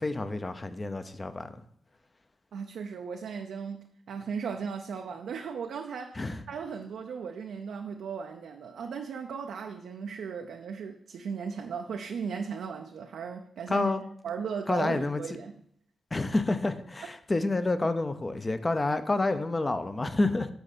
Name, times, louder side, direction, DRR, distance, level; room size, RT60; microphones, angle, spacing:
voice 1, 0.0-1.5 6.2-6.4 13.7-14.0 14.7-15.2 16.1-20.5, left 2 dB, 30° left, 10 dB, 0.7 m, -28 dB
voice 2, 2.5-13.9 14.2-15.5, right 6 dB, 80° right, 4 dB, 0.5 m, -37 dB
6.2 x 4.3 x 5.1 m, 0.68 s
supercardioid pair, 50°, 0 cm